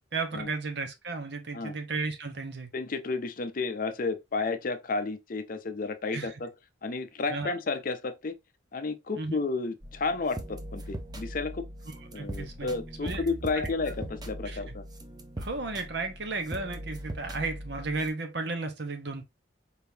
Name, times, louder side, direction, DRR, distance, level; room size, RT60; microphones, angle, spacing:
voice 1, 0.1-2.7 6.1-6.3 7.3-7.5 9.2-9.4 12.1-12.7 13.0-13.2 13.5-13.7 14.4-14.7 15.4-19.2, right 3 dB, 60° right, 0.9 m, -34 dB
voice 2, 2.7-6.5 6.8-8.3 8.7-11.7 12.1-14.8, left 3 dB, 45° left, 0.5 m, -32 dB
sound 1, 9.8-18.1, right 1 dB, 20° right, 0.6 m, -40 dB
4.3 x 3.6 x 2.7 m
head